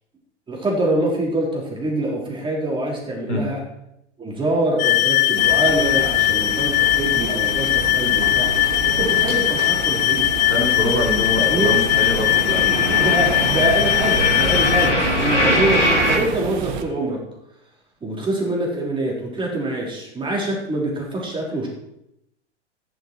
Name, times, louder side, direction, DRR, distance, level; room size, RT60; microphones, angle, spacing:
voice 1, 0.5-3.6 4.2-8.5 9.0-10.3 11.4-11.7 12.2-17.2 18.0-21.7, right 1 dB, 15° right, -2 dB, 4.2 m, -25 dB
sound 1, 4.8-14.9, left 16 dB, 40° left, 0.5 m, -20 dB
sound 2, 5.4-16.8, right 6 dB, 45° right, 1.6 m, -30 dB
sound 3, 7.1-9.5 9.8-16.2, equal, 90° left, 2.8 m, -24 dB
voice 2, 10.5-12.8, left 1 dB, 75° left, 0 dB, 3.9 m, -24 dB
14.0 x 10.5 x 4.6 m, 0.83 s
figure-of-eight pair, 100°, 35 cm